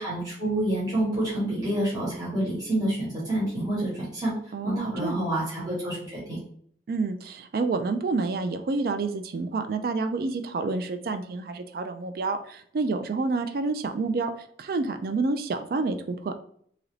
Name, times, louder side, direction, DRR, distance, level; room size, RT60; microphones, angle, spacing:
voice 1, 0.0-4.3 4.6-6.4, right 1 dB, 20° right, -8 dB, 1.1 m, -28 dB
voice 2, 4.5-5.2 6.9-14.3 14.6-16.4, right 3 dB, 55° right, 8 dB, 0.3 m, -28 dB
2.9 x 2.4 x 3.2 m, 0.62 s
head